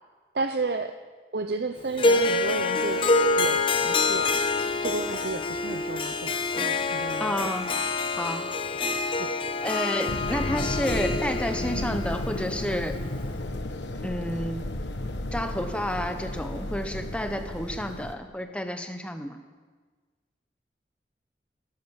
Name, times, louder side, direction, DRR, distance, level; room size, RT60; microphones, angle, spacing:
voice 1, 0.3-1.0 1.3-3.1 3.4-4.3 4.8-7.5 9.2-9.3, right 3 dB, 65° right, 7 dB, 0.7 m, -32 dB
Harp, 2.0-13.3, left 3 dB, 30° left, 0.9 m, -26 dB
voice 2, 7.2-7.8 8.2-8.5 9.6-13.0 14.0-14.7 15.3-19.4, equal, 5° left, 7 dB, 1.1 m, -30 dB
sound 1, 10.1-18.1, left 1 dB, 85° left, 1.2 m, -33 dB
16.5 x 12.0 x 7.3 m, 1.4 s
head